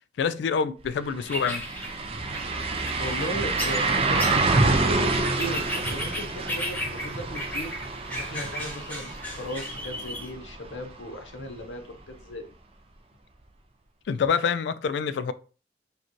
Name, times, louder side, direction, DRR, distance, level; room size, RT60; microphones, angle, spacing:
voice 1, 0.2-1.6 14.1-15.3, left 6 dB, 70° left, 0.3 m, -26 dB
sound 1, 0.8-0.9 1.2-11.0 11.4-11.5 14.2-14.3, right 3 dB, 30° right, 0.4 m, -27 dB
sound 2, 1.2-10.3, equal, 10° left, 0.9 m, -36 dB
voice 2, 3.0-4.3 4.7-7.7 8.1-12.5, equal, 90° left, 0.8 m, -37 dB
5.0 x 2.3 x 3.0 m
head